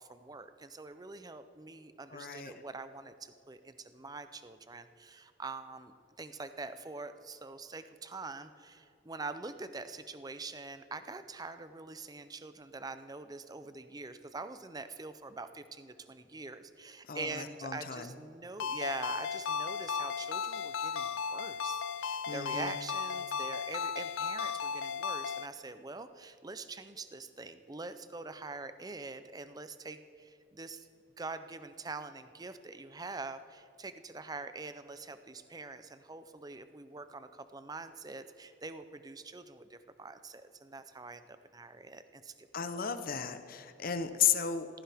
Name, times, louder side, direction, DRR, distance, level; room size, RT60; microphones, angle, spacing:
voice 1, 0.0-30.9 31.2-42.5, right 3 dB, 20° right, 11 dB, 0.5 m, -44 dB
voice 2, 2.1-2.5 17.0-18.1 22.3-22.8 42.5-44.7, left 8 dB, 45° left, 10 dB, 0.8 m, -34 dB
Ringtone, 18.6-25.5, left 6 dB, 85° left, 0.5 m, -35 dB
17.5 x 15.0 x 3.5 m, 2.6 s
head